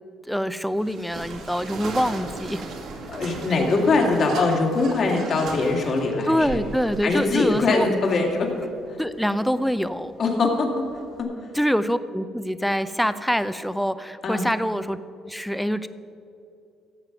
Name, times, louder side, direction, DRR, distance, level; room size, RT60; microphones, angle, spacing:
voice 1, 0.3-2.6 6.3-7.9 9.0-10.1 11.5-15.0 15.3-15.9, equal, ahead, 13 dB, 0.6 m, -25 dB
sound 1, 0.7-11.2, right 3 dB, 70° right, 2.0 m, -38 dB
voice 2, 3.1-6.6 7.0-8.7 10.2-11.3 14.2-14.4, left 3 dB, 50° left, 0 dB, 2.5 m, -22 dB
15.0 x 7.4 x 6.0 m, 2.6 s
cardioid pair, 90°, 0 cm